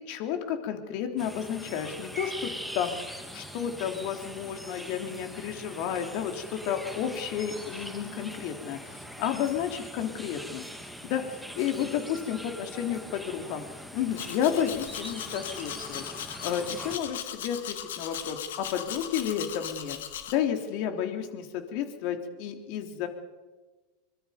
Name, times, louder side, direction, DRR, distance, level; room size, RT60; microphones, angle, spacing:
voice 1, 0.0-3.0 3.3-10.6 11.0-13.7 13.9-16.0 16.4-20.0 20.3-23.1, left 9 dB, 55° left, 5 dB, 3.5 m, -31 dB
sound 1, 1.2-17.0, equal, ahead, 2.8 m, -42 dB
Domestic sounds home sounds, 14.1-20.3, left 10 dB, 70° left, 2.2 m, -38 dB
24.5 x 23.0 x 5.3 m, 1.2 s
hypercardioid pair, 90°, 0 cm